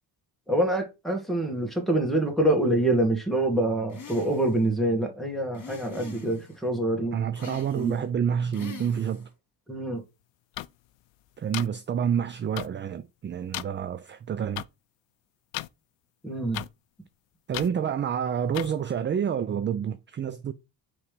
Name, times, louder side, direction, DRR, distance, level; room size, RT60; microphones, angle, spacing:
voice 1, 0.5-7.2 7.7-8.0 9.7-10.0 16.2-16.6, right 1 dB, ahead, 1.9 m, -26 dB
sound 1, 3.9-4.6 5.5-6.6 7.3-8.1 8.5-9.3, left 6 dB, 40° left, 2.4 m, -44 dB
voice 2, 7.1-9.3 11.4-14.6 17.5-20.5, right 8 dB, 30° right, 0.3 m, -28 dB
sound 2, 10.6-10.7 11.5-11.7 12.6-12.7 13.5-13.6 14.6-14.7 15.5-15.7 16.5-16.7 17.5-17.7 18.5-18.7, left 17 dB, 80° left, 0.5 m, -33 dB
5.7 x 3.3 x 5.1 m
cardioid pair, 100°, 44 cm